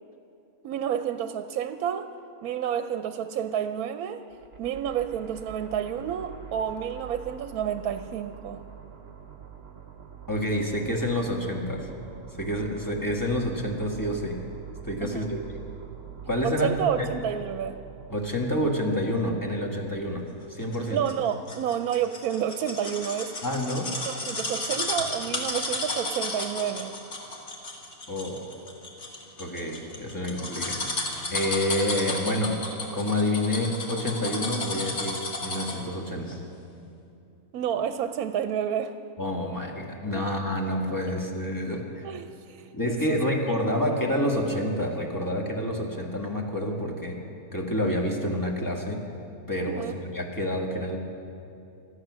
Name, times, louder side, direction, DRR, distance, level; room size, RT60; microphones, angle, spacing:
voice 1, 0.6-2.1 2.4-4.2 4.6-8.6 15.0-15.3 16.4-17.8 20.9-23.3 24.1-26.9 37.5-38.9 40.1-40.2 42.0-43.4 49.6-50.0, right 9 dB, 80° right, 9 dB, 1.1 m, -30 dB
sound 1, 4.3-20.5, right 9 dB, 45° right, 1.1 m, -45 dB
voice 2, 10.3-11.9 12.4-14.4 14.8-15.6 16.3-17.1 18.1-20.2 20.5-21.0 23.4-23.9 28.1-28.5 29.4-30.8 31.3-32.5 32.9-36.4 39.2-42.0 42.7-47.2 47.5-49.0 49.5-51.0, left 1 dB, 15° left, 0 dB, 1.6 m, -28 dB
sound 2, 20.7-35.9 36.3-36.4, left 2 dB, 55° left, 2.0 m, -33 dB
25.0 x 8.4 x 6.2 m, 2.6 s
omnidirectional pair, 1.5 m